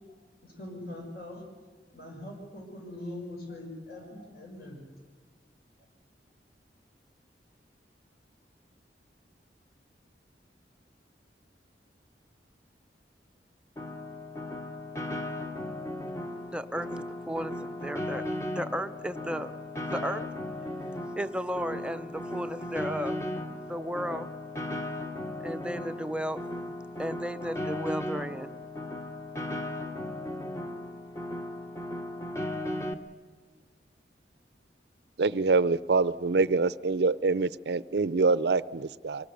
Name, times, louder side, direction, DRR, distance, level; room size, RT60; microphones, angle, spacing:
voice 1, 0.4-1.4 1.9-4.8, left 1 dB, 60° left, 0 dB, 6.4 m, -42 dB
Piano, 13.8-32.9, left 1 dB, 15° left, 1.0 m, -36 dB
voice 2, 16.5-18.2 18.6-19.5 19.9-20.2 21.2-23.2 23.6-24.3 25.4-26.4 26.7-28.5, equal, 5° right, 10 dB, 0.6 m, -34 dB
voice 3, 35.2-39.3, right 4 dB, 65° right, 18 dB, 0.5 m, -25 dB
24.5 x 18.5 x 6.8 m, 1.4 s
head